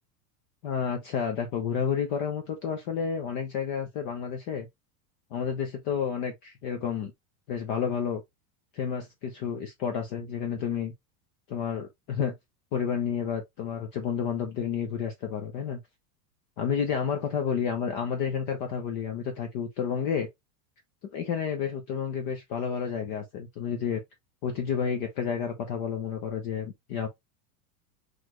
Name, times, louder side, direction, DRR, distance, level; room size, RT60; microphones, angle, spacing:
voice 1, 0.6-4.7 5.3-7.1 7.5-8.2 8.7-10.9 11.5-12.3 12.7-15.8 16.6-20.3 21.1-24.0 24.4-27.1, left 7 dB, 35° left, 0.6 m, -30 dB
4.1 x 3.2 x 2.9 m
supercardioid pair, 170°, 46 cm